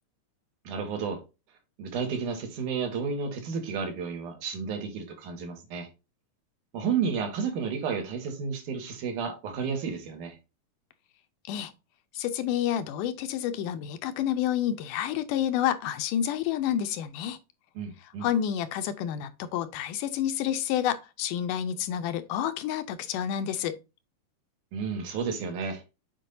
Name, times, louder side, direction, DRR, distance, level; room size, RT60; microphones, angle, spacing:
voice 1, 0.6-1.2 1.8-5.9 6.7-10.4 17.7-18.3 24.7-25.8, right 6 dB, 70° right, 3.0 m, -32 dB
voice 2, 12.1-17.4 18.0-23.8, left 10 dB, 80° left, 2.1 m, -29 dB
7.6 x 5.1 x 2.6 m
omnidirectional pair, 3.8 m